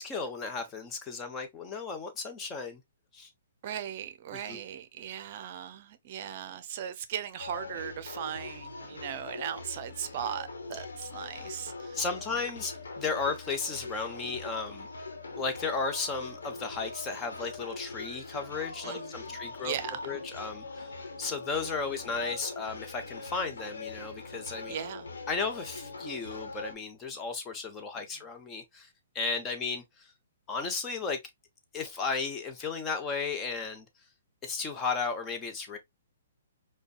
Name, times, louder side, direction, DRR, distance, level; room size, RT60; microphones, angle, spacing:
voice 1, 0.0-2.8 3.1-3.3 4.3-4.6 11.9-14.9 15.4-19.7 20.0-20.9 21.2-24.8 25.3-28.9 29.1-30.1 30.5-31.2 31.7-33.9 34.4-35.8, left 4 dB, 20° left, 0.9 m, -34 dB
voice 2, 3.6-12.0 18.8-19.4 19.6-20.0 24.7-25.1, right 9 dB, 45° right, 0.6 m, -38 dB
sound 1, 7.4-26.7, left 3 dB, 80° left, 1.1 m, -42 dB
5.0 x 2.3 x 2.3 m
hypercardioid pair, 135°, 0 cm